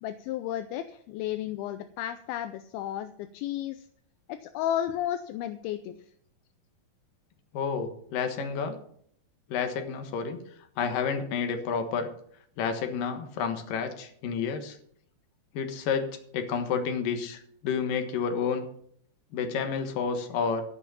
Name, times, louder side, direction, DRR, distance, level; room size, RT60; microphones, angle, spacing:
voice 1, 0.0-3.9 4.3-6.0, left 11 dB, 80° left, 9 dB, 2.4 m, -33 dB
voice 2, 7.5-8.8 9.5-10.4 10.8-12.1 12.6-14.8 15.5-16.1 16.3-18.6 19.3-20.6, left 6 dB, 65° left, 6 dB, 2.8 m, -30 dB
14.5 x 6.0 x 6.9 m, 0.64 s
omnidirectional pair, 4.6 m